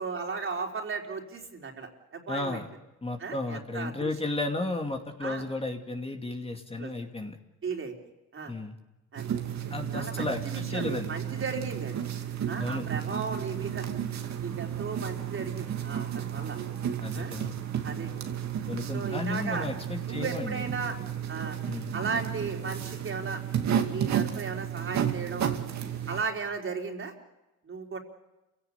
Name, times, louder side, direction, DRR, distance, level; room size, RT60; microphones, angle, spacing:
voice 1, 0.0-2.6 3.2-4.1 5.2-5.5 6.8-6.9 7.6-7.9 8.3-8.5 9.1-9.3 9.6-11.9 12.5-13.9 14.4-16.6 17.1-17.4 17.8-18.4 18.9-19.7 20.1-21.0 21.3-21.6 21.9-23.4 23.7-25.5 26.1-27.1 27.6-28.0, right 5 dB, 45° right, 2 dB, 4.2 m, -35 dB
voice 2, 2.3-2.7 3.0-7.4 8.5-8.8 9.7-11.2 12.6-12.9 17.0-17.5 18.7-20.6 21.7-21.9, left 2 dB, 20° left, 3 dB, 2.6 m, -33 dB
sound 1, 9.2-26.2, right 9 dB, 65° right, 2.5 m, -33 dB
28.0 x 17.0 x 8.4 m, 1.0 s
cardioid pair, 90°, 30 cm